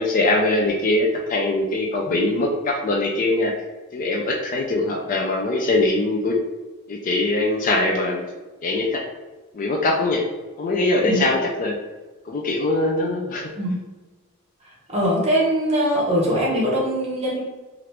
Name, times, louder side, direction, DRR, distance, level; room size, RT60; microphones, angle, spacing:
voice 1, 0.0-3.5 3.9-6.4 6.9-8.2 8.6-9.0 9.5-10.2 10.6-11.8 12.3-13.5, left 2 dB, 35° left, 0 dB, 0.4 m, -22 dB
voice 2, 14.9-17.4, equal, 30° right, -4 dB, 0.9 m, -21 dB
2.9 x 2.5 x 3.2 m, 1.2 s
head